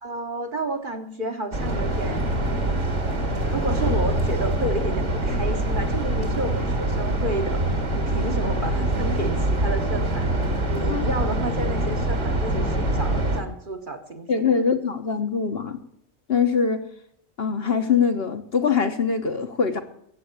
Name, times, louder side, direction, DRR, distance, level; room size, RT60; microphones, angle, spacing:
voice 1, 0.0-2.3 3.5-10.3 10.7-14.6, right 1 dB, 40° right, 5 dB, 1.4 m, -31 dB
sound 1, 1.5-13.4, right 1 dB, 65° right, 2.5 m, -24 dB
voice 2, 14.3-15.8 16.3-16.8 17.4-19.8, left 6 dB, 50° left, 6 dB, 1.3 m, -23 dB
14.5 x 8.5 x 7.0 m, 0.69 s
omnidirectional pair, 1.4 m